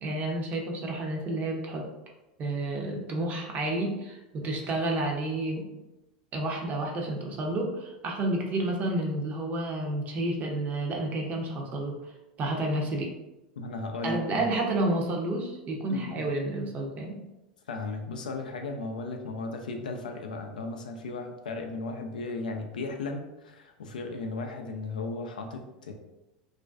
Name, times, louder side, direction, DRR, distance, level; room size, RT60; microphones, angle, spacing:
voice 1, 0.0-1.9 2.4-5.6 6.3-12.0 12.4-13.1 14.0-17.2, right 2 dB, 40° right, 0 dB, 0.6 m, -30 dB
voice 2, 13.6-14.4 15.9-16.3 17.7-25.9, left 3 dB, 80° left, 4 dB, 0.3 m, -36 dB
2.4 x 2.2 x 2.3 m, 0.97 s
hypercardioid pair, 85°, 4 cm